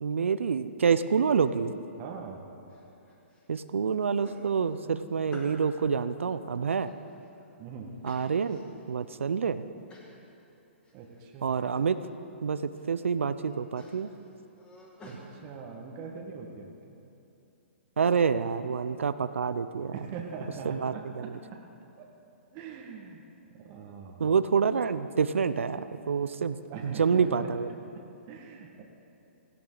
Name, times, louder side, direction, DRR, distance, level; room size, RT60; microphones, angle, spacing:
voice 1, 0.0-1.7 3.5-6.9 8.0-8.6 8.9-9.6 11.4-12.0 12.4-14.1 18.0-20.0 20.7-21.3 24.2-26.6 26.8-27.7, right 6 dB, 75° right, 12 dB, 0.6 m, -27 dB
voice 2, 2.0-2.5 7.6-7.9 10.9-11.6 15.0-17.0 19.9-21.6 22.0-22.1 22.5-24.3 26.7-28.8, right 5 dB, 35° right, 0 dB, 1.7 m, -42 dB
sound 1, 2.7-3.4 3.8-5.8 6.3-7.5 8.0-8.9 9.3-9.4 9.9-10.2 10.6-11.3 11.5-12.1 12.5-13.0 13.3-15.2, left 1 dB, 15° left, 2.4 m, -52 dB
17.5 x 16.0 x 4.0 m, 2.8 s
hypercardioid pair, 130°, 7 cm